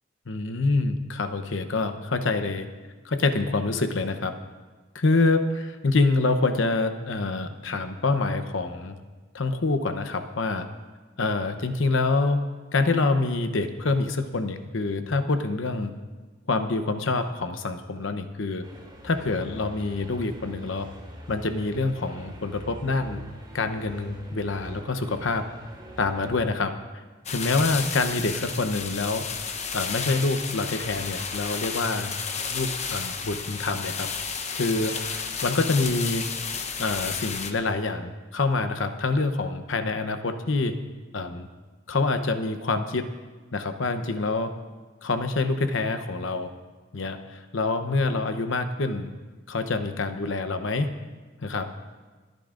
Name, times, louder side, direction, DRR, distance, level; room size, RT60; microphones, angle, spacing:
voice 1, 0.3-2.7 3.0-4.3 4.9-8.9 9.3-10.7 11.2-12.4 12.7-15.9 16.5-18.6 19.0-20.9 21.3-23.2 23.5-25.4 26.0-26.8 27.3-29.2 29.7-32.1 32.4-34.1 34.5-36.3 36.8-40.7 41.1-41.5 41.9-43.1 43.5-44.5 45.0-46.5 46.9-49.1 49.5-50.9 51.4-51.8, left 3 dB, 80° left, 9 dB, 0.9 m, -26 dB
sound 1, 18.6-26.5, equal, 20° right, 3.2 m, -44 dB
sound 2, 27.3-37.5, left 6 dB, 35° left, 0.8 m, -32 dB
29.5 x 10.5 x 2.6 m, 1.4 s
head